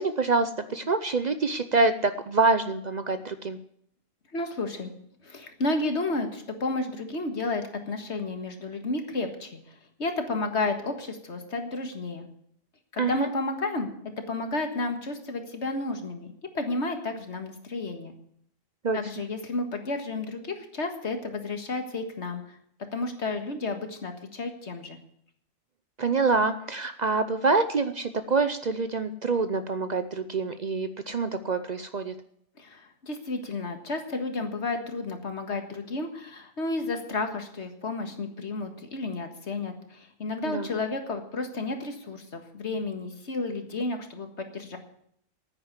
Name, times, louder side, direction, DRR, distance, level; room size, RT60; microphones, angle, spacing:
voice 1, 0.0-3.6 13.0-13.3 18.8-19.0 26.0-32.1 40.4-40.7, right 3 dB, 45° right, 10 dB, 0.7 m, -26 dB
voice 2, 4.3-4.9 5.2-9.6 10.0-12.3 12.9-13.9 14.3-18.1 18.9-22.4 22.9-25.0 32.6-44.8, left 2 dB, 70° left, 6 dB, 2.0 m, -32 dB
9.7 x 9.7 x 9.7 m, 0.70 s
omnidirectional pair, 1.2 m